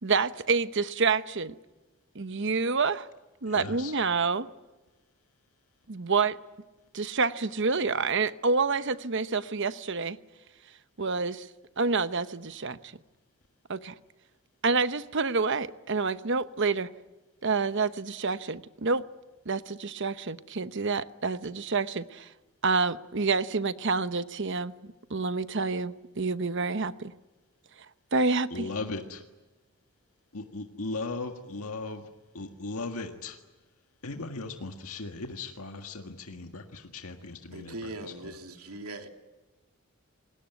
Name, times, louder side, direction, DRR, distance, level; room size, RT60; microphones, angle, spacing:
voice 1, 0.0-1.5 2.1-3.1 3.4-4.5 5.9-6.4 6.9-10.2 11.0-11.5 11.8-12.9 13.7-13.9 14.6-16.9 17.4-19.0 19.5-22.3 22.6-24.7 25.1-27.1 28.1-28.7, right 4 dB, 55° right, 13 dB, 0.9 m, -28 dB
voice 2, 3.5-4.0 28.5-29.2 30.3-32.0 32.3-33.4 34.0-38.4, left 3 dB, 85° left, 4 dB, 1.7 m, -38 dB
voice 3, 37.5-39.1, right 2 dB, 85° right, 4 dB, 2.9 m, -40 dB
27.5 x 20.5 x 9.3 m, 1.2 s
head